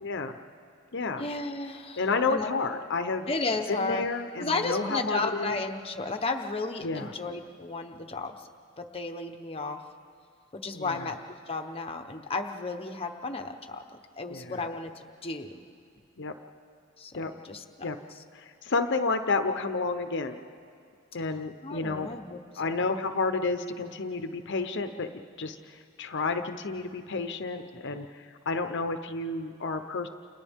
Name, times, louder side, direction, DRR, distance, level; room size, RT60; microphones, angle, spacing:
voice 1, 0.0-0.4 0.9-1.2 2.0-3.3 3.7-5.6 6.8-7.1 10.7-11.1 14.3-14.6 16.2-16.3 17.1-17.3 17.8-18.0 18.3-20.4 21.1-22.1 22.6-25.1 25.4-30.1, left 3 dB, 60° left, 7 dB, 0.9 m, -30 dB
voice 2, 1.2-2.0 2.3-2.5 3.3-4.0 4.4-8.5 8.8-9.8 10.5-11.2 11.5-13.8 14.1-15.6 17.0-17.9 21.6-22.9, left 3 dB, 30° left, 5 dB, 1.0 m, -33 dB
30.0 x 28.5 x 3.6 m, 2.3 s
head